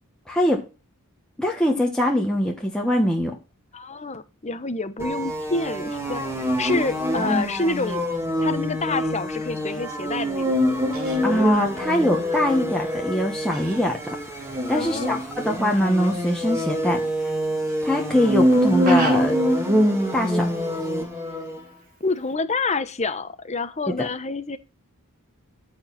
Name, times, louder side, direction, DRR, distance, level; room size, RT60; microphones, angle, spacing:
voice 1, 0.3-0.6 1.4-3.3 11.2-14.2 14.7-17.0 17.8-19.4 20.1-20.5 23.9-24.1, equal, 5° left, -1 dB, 1.4 m, -23 dB
voice 2, 3.7-8.0 8.4-10.7 14.7-15.2 22.0-24.6, left 3 dB, 30° left, 12 dB, 1.1 m, -28 dB
sound 1, 5.0-21.6, equal, 15° right, 2.8 m, -25 dB
Fowl, 10.3-22.3, right 2 dB, 45° right, 4.2 m, -41 dB
14.0 x 4.8 x 5.8 m, 0.30 s
head